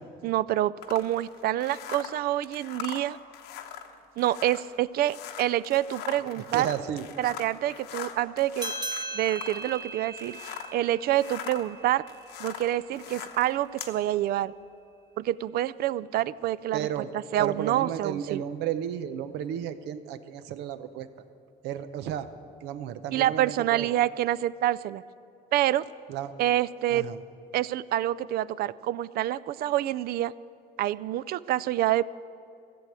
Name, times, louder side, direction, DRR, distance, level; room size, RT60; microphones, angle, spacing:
voice 1, 0.2-3.2 4.2-6.7 7.2-8.7 9.1-12.0 12.4-14.5 15.2-18.4 23.1-25.0 25.5-25.8 26.4-27.1 27.5-30.3 30.8-32.0, right 13 dB, 65° right, 19 dB, 0.4 m, -27 dB
sound 1, 0.8-10.8 11.1-14.0, left 9 dB, 90° left, 1.0 m, -42 dB
voice 2, 6.4-7.1 16.7-17.1 17.4-21.1 21.6-22.3 22.6-23.9 26.1-26.3 26.9-27.2, right 10 dB, 90° right, 12 dB, 0.7 m, -33 dB
sound 2, 8.6-13.5, right 2 dB, 25° right, 1.2 m, -39 dB
14.5 x 7.8 x 8.8 m, 2.6 s
cardioid pair, 110°, 17 cm